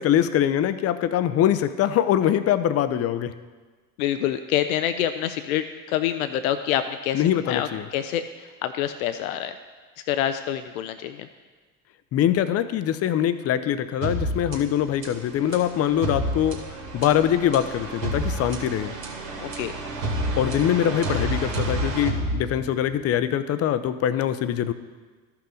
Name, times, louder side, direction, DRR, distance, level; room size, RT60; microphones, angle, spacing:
voice 1, 0.0-3.3 7.1-7.9 12.1-16.6 16.9-18.9 20.4-24.7, left 10 dB, 35° left, 13 dB, 0.6 m, -23 dB
voice 2, 4.0-8.2 8.6-9.5 10.1-11.3 19.4-19.7, left 11 dB, 75° left, 9 dB, 0.6 m, -26 dB
sound 1, 14.0-23.0, right 1 dB, 65° right, 2.1 m, -30 dB
13.5 x 5.7 x 3.9 m, 1.4 s
hypercardioid pair, 75°, 43 cm